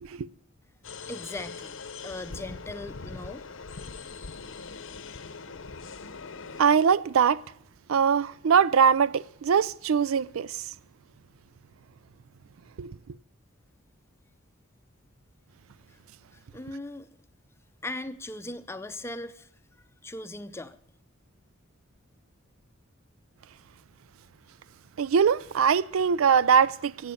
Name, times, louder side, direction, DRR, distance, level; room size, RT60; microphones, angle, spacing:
sound 1, 0.8-6.6, left 4 dB, 65° left, 0.8 m, -41 dB
voice 1, 1.0-3.5 16.3-17.1 17.8-19.5 20.0-20.8, left 2 dB, 10° left, 0.6 m, -39 dB
voice 2, 6.6-7.4 7.9-10.7 12.8-12.9 25.0-27.1, right 7 dB, 80° right, 0.4 m, -22 dB
14.5 x 8.8 x 7.1 m
head